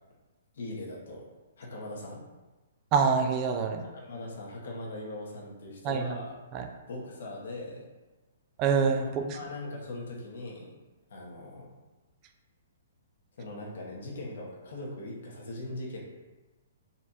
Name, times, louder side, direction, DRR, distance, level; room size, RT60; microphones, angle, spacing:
voice 1, 0.5-1.3 1.6-2.2 3.9-6.4 6.9-7.9 9.0-10.7 11.1-11.7 13.4-16.0, left 2 dB, 60° left, -3 dB, 1.1 m, -40 dB
voice 2, 2.9-3.8 5.8-6.1 6.5-6.7 8.6-9.4, right 5 dB, 20° right, 4 dB, 0.3 m, -26 dB
4.2 x 2.5 x 4.1 m, 1.2 s
hypercardioid pair, 175°, 0 cm